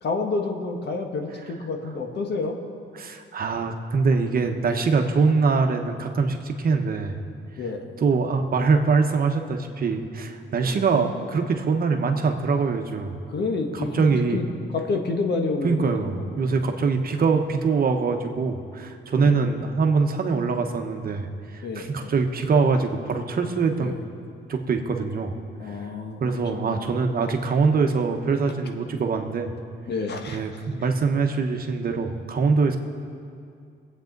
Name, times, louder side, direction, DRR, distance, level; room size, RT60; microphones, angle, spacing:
voice 1, 0.0-2.6 7.6-7.9 10.6-10.8 13.3-14.1 14.3-14.5 14.7-16.3 19.2-19.4 21.6-22.1 23.8-24.0 25.6-26.9 27.2-27.3 29.9-30.4, left 3 dB, 55° left, 3 dB, 1.5 m, -29 dB
voice 2, 2.9-7.2 8.0-13.1 13.7-14.4 15.6-21.3 21.5-23.9 24.5-25.3 25.7-25.8 26.2-29.5 30.3-32.8, right 4 dB, 50° right, 5 dB, 1.2 m, -23 dB
20.5 x 8.4 x 4.0 m, 2.4 s
cardioid pair, 90°, 20 cm